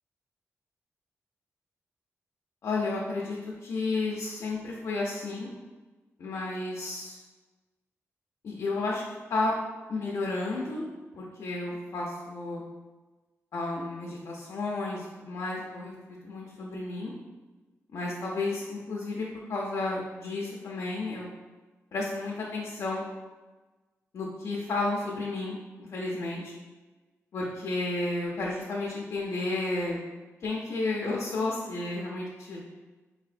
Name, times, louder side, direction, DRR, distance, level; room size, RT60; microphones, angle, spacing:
voice 1, 2.6-5.5 6.2-7.2 8.4-9.0 9.3-9.5 9.9-10.8 11.1-12.6 13.5-17.1 17.9-21.3 21.9-23.0 24.1-26.5 27.3-30.0 30.4-32.6, left 2 dB, 65° left, -4 dB, 0.5 m, -32 dB
4.0 x 2.7 x 2.5 m, 1.2 s
wide cardioid pair, 155°, 5 cm